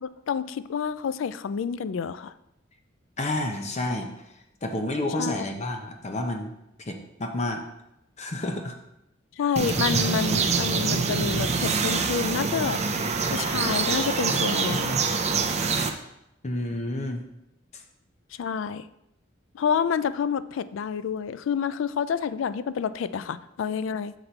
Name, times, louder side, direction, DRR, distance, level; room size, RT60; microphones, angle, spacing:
voice 1, 0.0-2.3 5.2-5.4 9.4-15.0 18.4-18.9 19.5-24.1, left 7 dB, 70° left, 14 dB, 0.3 m, -29 dB
voice 2, 3.2-4.1 4.6-6.5 6.9-7.6 8.2-8.7 16.4-17.2 17.7-17.8, left 1 dB, 35° left, 3 dB, 0.7 m, -30 dB
sound 1, 9.6-15.9, right 4 dB, 35° right, 0.5 m, -25 dB
6.5 x 4.1 x 4.4 m, 0.84 s
head